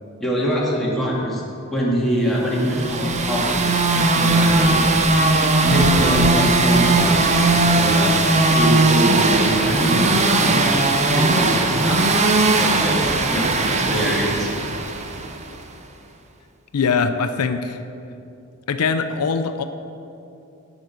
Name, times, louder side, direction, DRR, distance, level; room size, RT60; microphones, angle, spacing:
voice 1, 0.2-1.4 1.7-5.1 5.6-8.2 8.6-12.0 12.5-14.5, equal, ahead, -6 dB, 2.0 m, -24 dB
sound 1, 2.5-15.4, right 2 dB, 30° right, 0.7 m, -18 dB
voice 2, 16.7-17.8 18.7-19.6, left 5 dB, 80° left, 9 dB, 0.5 m, -22 dB
8.6 x 6.2 x 8.0 m, 2.7 s
head